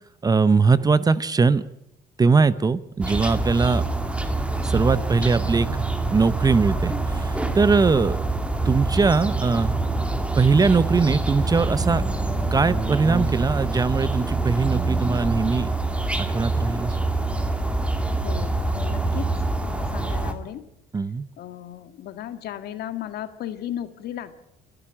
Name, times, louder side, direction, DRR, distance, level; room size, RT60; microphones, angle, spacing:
voice 1, 0.2-1.6 2.2-3.8 4.6-8.2 8.7-9.8 10.3-12.0 12.5-15.7 16.3-17.0 20.9-21.3, right 4 dB, 20° right, 17 dB, 0.8 m, -21 dB
sound 1, 3.0-20.3, right 2 dB, 5° right, 2.2 m, -25 dB
voice 2, 18.1-19.3 19.6-20.6 21.4-24.3, left 11 dB, 70° left, 11 dB, 1.8 m, -35 dB
29.0 x 12.0 x 8.8 m, 0.78 s
cardioid pair, 110°, 17 cm